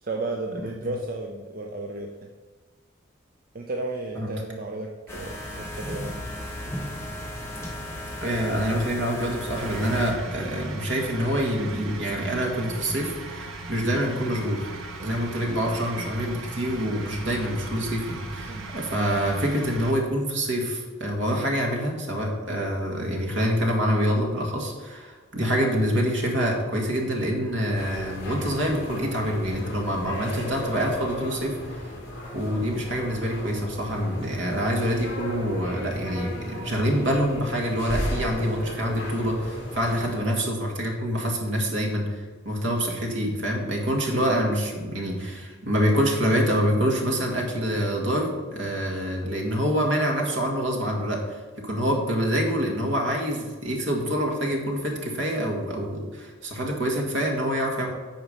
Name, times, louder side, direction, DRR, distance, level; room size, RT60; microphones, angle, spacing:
voice 1, 0.0-2.3 3.5-6.2 15.0-15.2 18.5-18.7, right 2 dB, 45° right, 2 dB, 0.6 m, -33 dB
sound 1, 5.1-10.1, left 1 dB, 10° left, 1.3 m, -35 dB
voice 2, 8.2-14.7 15.0-31.9 32.3-42.1 42.5-57.9, equal, 65° right, 0 dB, 1.9 m, -26 dB
sound 2, 9.6-19.9, right 2 dB, 85° right, 1.3 m, -38 dB
sound 3, 27.7-40.2, equal, 55° left, 2.3 m, -35 dB
9.0 x 4.8 x 6.6 m, 1.4 s
head